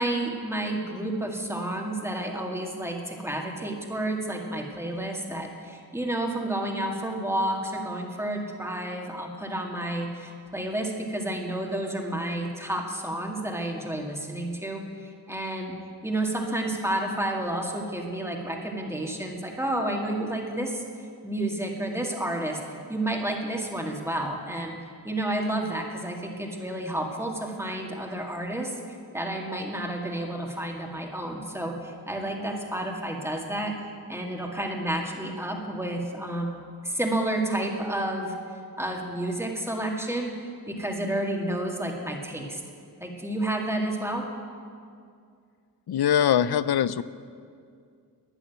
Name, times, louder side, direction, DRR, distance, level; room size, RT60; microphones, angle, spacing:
voice 1, 0.0-15.7 16.0-20.8 21.2-22.6 22.9-24.8 25.0-33.7 34.1-36.6 36.8-38.3 38.8-42.6 43.0-44.3, right 1 dB, 5° right, 0 dB, 2.0 m, -30 dB
voice 2, 45.9-47.0, left 9 dB, 75° left, 16 dB, 0.5 m, -22 dB
12.0 x 10.0 x 9.3 m, 2.3 s
wide cardioid pair, 80°, 39 cm